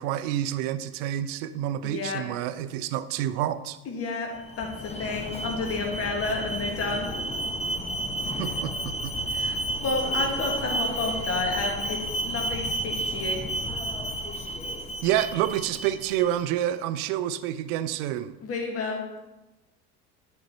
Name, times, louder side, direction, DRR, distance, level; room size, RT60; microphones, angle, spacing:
voice 1, 0.0-3.8 8.4-9.2 15.0-18.4, right 12 dB, 55° right, 13 dB, 0.6 m, -28 dB
voice 2, 1.8-2.2 3.9-4.3 4.6-7.1 8.3-8.5 9.3-13.4 18.4-19.0, left 3 dB, 30° left, 1 dB, 1.6 m, -31 dB
Alarm, 4.4-16.4, right 1 dB, 15° left, 0.8 m, -31 dB
10.0 x 4.2 x 4.3 m, 1.1 s
figure-of-eight pair, 70°, 45 cm